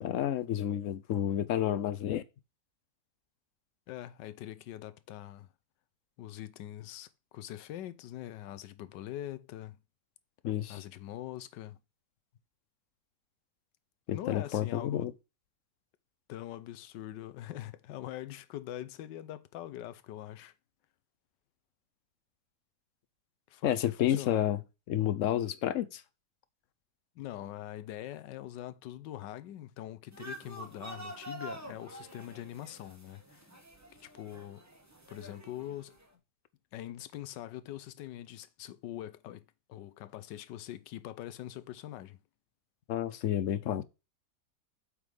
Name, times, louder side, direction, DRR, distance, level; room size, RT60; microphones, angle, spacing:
voice 1, 0.0-2.2 10.4-10.8 14.1-15.1 23.6-24.6 24.9-26.0 42.9-43.8, left 11 dB, 65° left, 0.8 m, -30 dB
voice 2, 3.9-5.5 6.2-9.8 10.7-11.8 14.1-15.1 16.3-20.5 23.5-24.4 27.1-33.5 34.0-34.6 35.1-36.0 36.7-42.2, left 13 dB, 90° left, 1.3 m, -43 dB
sound 1, 30.1-36.0, right 1 dB, 10° right, 1.1 m, -47 dB
8.2 x 3.8 x 4.9 m
omnidirectional pair, 1.8 m